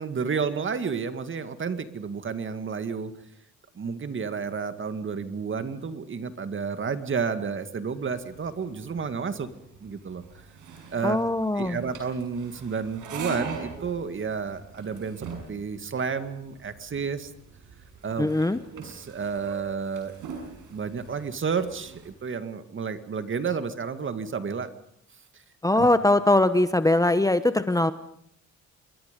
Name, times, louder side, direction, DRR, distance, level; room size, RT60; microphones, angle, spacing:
voice 1, 0.0-3.1 3.8-9.5 9.8-10.2 10.9-11.2 11.5-17.3 18.0-18.3 18.7-20.1 20.7-24.7 25.8-25.9, right 5 dB, 40° right, 10 dB, 2.1 m, -31 dB
sound 1, 7.9-22.1, right 4 dB, 90° right, 6.7 m, -43 dB
voice 2, 11.0-11.8 18.2-18.6 25.6-27.9, left 2 dB, 10° left, 12 dB, 1.0 m, -21 dB
27.5 x 22.0 x 5.3 m, 0.71 s
cardioid pair, 90°, 30 cm